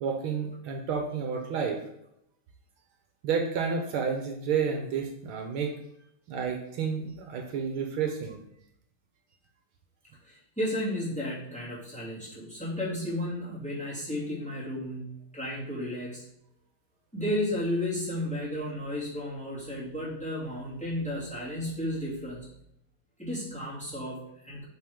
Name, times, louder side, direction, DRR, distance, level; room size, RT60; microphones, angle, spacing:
voice 1, 0.0-1.8 3.2-5.7 6.3-8.4, right 6 dB, 75° right, 3 dB, 1.7 m, -30 dB
voice 2, 10.2-16.2 17.1-22.5 23.2-24.6, left 1 dB, 5° left, -8 dB, 2.4 m, -33 dB
7.9 x 4.4 x 3.6 m, 0.78 s
omnidirectional pair, 2.3 m